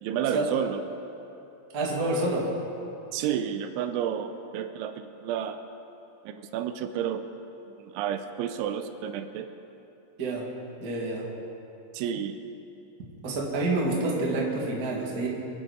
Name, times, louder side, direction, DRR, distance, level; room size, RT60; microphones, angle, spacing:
voice 1, 0.0-0.8 3.1-5.6 6.3-7.2 7.8-9.5 11.9-12.3, right 9 dB, 85° right, 8 dB, 3.0 m, -31 dB
voice 2, 1.7-2.5 10.2-10.5 10.8-11.2 13.2-15.3, right 2 dB, 45° right, -3 dB, 1.2 m, -28 dB
26.0 x 9.1 x 5.2 m, 2.9 s
omnidirectional pair, 5.5 m